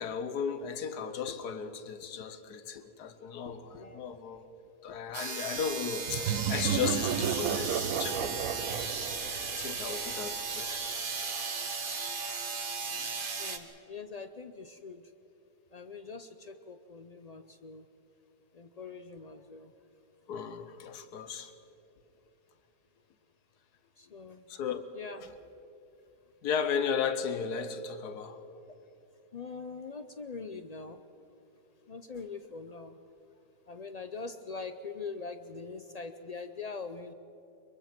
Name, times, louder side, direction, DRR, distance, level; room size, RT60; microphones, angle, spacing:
voice 1, 0.0-4.4 4.8-8.9 9.6-10.8 12.9-13.0 20.3-21.5 24.5-24.8 25.2-25.3 26.4-28.4, left 6 dB, 85° left, 1.5 m, -35 dB
sound 1, 5.1-13.6, right 4 dB, 35° right, 1.3 m, -36 dB
sound 2, 6.1-10.6, right 9 dB, 70° right, 1.1 m, -33 dB
voice 2, 13.4-15.0 15.7-17.9 18.5-19.7 24.0-24.4 24.9-25.2 29.3-31.0 31.9-33.0 33.7-37.1, left 4 dB, 70° left, 0.3 m, -43 dB
24.0 x 22.5 x 6.0 m
omnidirectional pair, 1.7 m